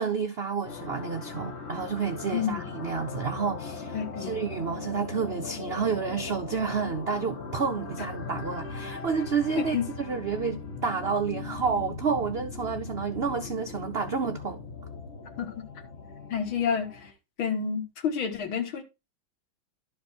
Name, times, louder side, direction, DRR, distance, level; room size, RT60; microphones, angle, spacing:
voice 1, 0.0-14.6, right 6 dB, 80° right, 0.5 m, -30 dB
sound 1, 0.6-17.1, left 4 dB, 35° left, 1.5 m, -39 dB
voice 2, 2.3-2.6 3.9-4.3 9.6-9.8 15.4-15.5 16.3-16.9 17.4-18.8, left 7 dB, 85° left, 2.4 m, -29 dB
12.0 x 5.2 x 4.3 m
omnidirectional pair, 2.2 m